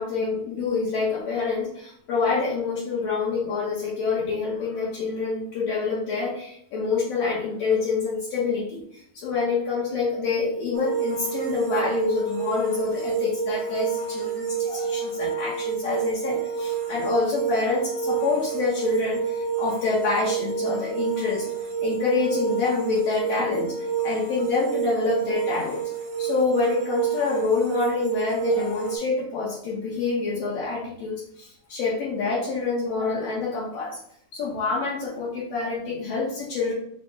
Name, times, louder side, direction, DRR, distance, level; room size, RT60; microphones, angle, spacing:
voice 1, 0.0-25.9 26.2-34.0 34.3-36.7, left 4 dB, 70° left, -5 dB, 1.7 m, -27 dB
sound 1, 10.7-29.0, right 7 dB, 85° right, 1.3 m, -29 dB
4.9 x 2.0 x 3.5 m, 0.69 s
omnidirectional pair, 3.3 m